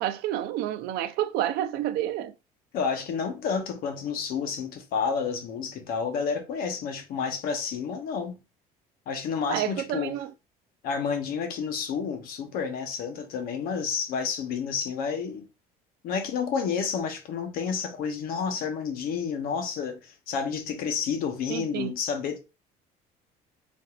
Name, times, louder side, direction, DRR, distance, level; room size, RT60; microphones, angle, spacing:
voice 1, 0.0-2.3 9.5-10.3 21.5-21.9, right 12 dB, 70° right, 0.5 m, -29 dB
voice 2, 2.7-8.4 9.1-10.2 10.8-15.4 16.0-22.4, left 6 dB, 65° left, 0.9 m, -30 dB
4.3 x 2.6 x 2.4 m
cardioid pair, 125°, 17 cm